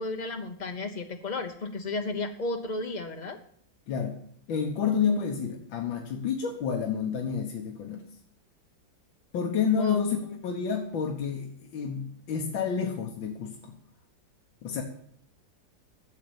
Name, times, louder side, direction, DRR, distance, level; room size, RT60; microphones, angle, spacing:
voice 1, 0.0-3.4 9.8-10.0, left 2 dB, 55° left, 4 dB, 0.4 m, -33 dB
voice 2, 3.9-4.2 4.5-8.0 9.3-13.7 14.6-14.8, left 6 dB, 90° left, 2 dB, 2.0 m, -29 dB
12.0 x 7.7 x 7.0 m, 0.64 s
omnidirectional pair, 2.0 m